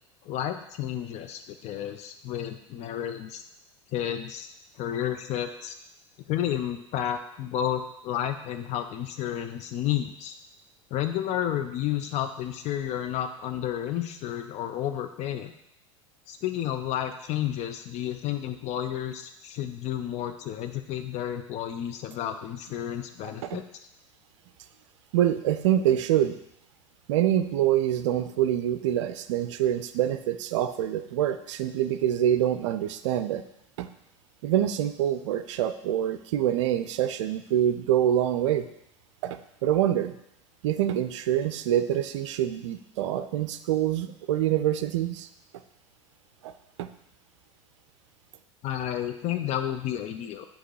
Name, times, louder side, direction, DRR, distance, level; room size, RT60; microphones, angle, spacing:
voice 1, 0.2-3.4 3.9-4.5 4.7-5.7 6.3-10.3 10.9-15.5 16.3-23.6 48.6-50.5, left 11 dB, 45° left, 7 dB, 0.5 m, -31 dB
voice 2, 23.2-23.6 25.1-26.4 27.1-33.4 33.8-33.9 34.4-38.7 39.2-40.1 40.6-45.3 46.4-46.5 46.8-46.9, right 11 dB, 70° right, 11 dB, 0.4 m, -26 dB
7.8 x 3.0 x 4.8 m, 0.80 s
hypercardioid pair, 80°, 16 cm